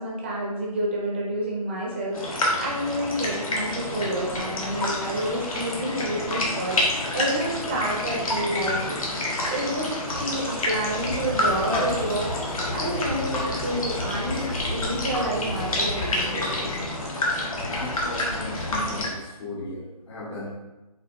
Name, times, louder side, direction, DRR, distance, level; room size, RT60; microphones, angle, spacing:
voice 1, 0.0-9.0 9.5-16.7, right 1 dB, 20° right, -3 dB, 0.6 m, -29 dB
sound 1, 2.1-19.1, left 1 dB, 60° left, 1.3 m, -29 dB
sound 2, 3.6-16.9, left 5 dB, 80° left, 0.4 m, -41 dB
Conversation, 10.9-16.2, left 1 dB, 15° left, 0.9 m, -33 dB
voice 2, 17.7-20.5, left 2 dB, 45° left, -5 dB, 0.9 m, -36 dB
6.2 x 2.7 x 2.6 m, 1.1 s
figure-of-eight pair, 160°, 20 cm